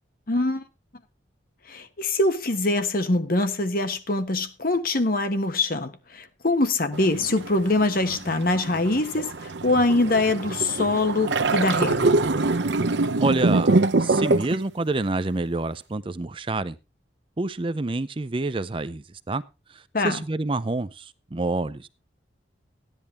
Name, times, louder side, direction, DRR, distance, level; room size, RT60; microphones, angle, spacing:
voice 1, 0.3-0.6 1.7-12.2 19.9-20.2, left 2 dB, 50° left, 1.4 m, -24 dB
sound 1, 6.9-14.6, right 3 dB, 70° right, 0.7 m, -24 dB
voice 2, 13.2-16.8 17.4-19.4 19.7-21.9, right 2 dB, 30° right, 0.5 m, -28 dB
14.5 x 10.5 x 3.4 m
head